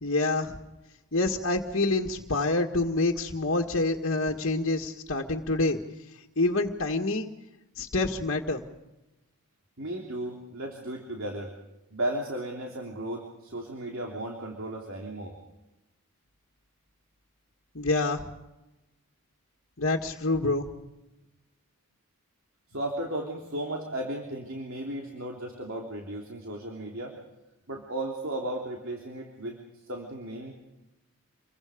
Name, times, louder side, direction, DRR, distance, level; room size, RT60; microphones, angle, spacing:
voice 1, 0.0-0.6 1.1-5.8 6.4-7.3 7.8-8.6 17.8-18.2 19.8-20.7, left 2 dB, 60° left, 1 dB, 1.8 m, -27 dB
voice 2, 9.8-11.5 11.9-15.4 22.7-27.2 27.7-29.6 29.9-30.5, right 1 dB, 65° right, 0 dB, 3.3 m, -35 dB
28.5 x 23.0 x 5.1 m, 0.98 s
head